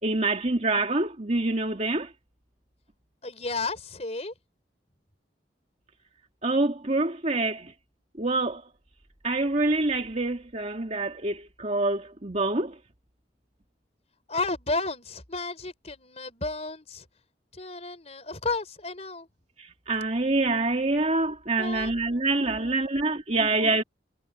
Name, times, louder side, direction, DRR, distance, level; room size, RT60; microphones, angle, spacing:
voice 1, 0.0-2.1 6.4-7.7 8.2-8.6 9.2-12.7 19.6-23.8, right 2 dB, 40° right, 2.4 m, -26 dB
voice 2, 3.2-4.3 14.3-17.0 17.5-19.3 21.6-22.7 23.1-23.8, left 3 dB, 35° left, 4.5 m, -33 dB
head